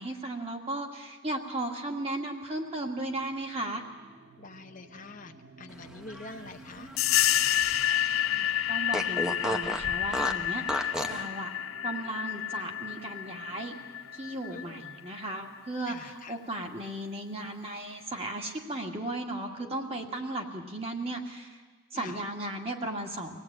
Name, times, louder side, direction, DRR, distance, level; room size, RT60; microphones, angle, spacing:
voice 1, 0.0-3.8 8.3-11.5 11.8-13.7 14.1-21.6 21.9-23.4, right 1 dB, 30° right, 1 dB, 2.1 m, -36 dB
sound 1, 2.5-18.1, right 2 dB, 50° right, 2.1 m, -55 dB
voice 2, 4.4-6.9 14.5-14.8 15.8-16.4 19.6-20.2 21.9-22.2, left 3 dB, 40° left, 5 dB, 0.8 m, -46 dB
Fart, 5.9-8.0 8.3-8.4 8.9-11.3, equal, 5° right, 0.9 m, -34 dB
sound 2, 7.0-15.3, left 12 dB, 75° left, 0.6 m, -29 dB
24.5 x 18.0 x 8.9 m, 1.4 s
head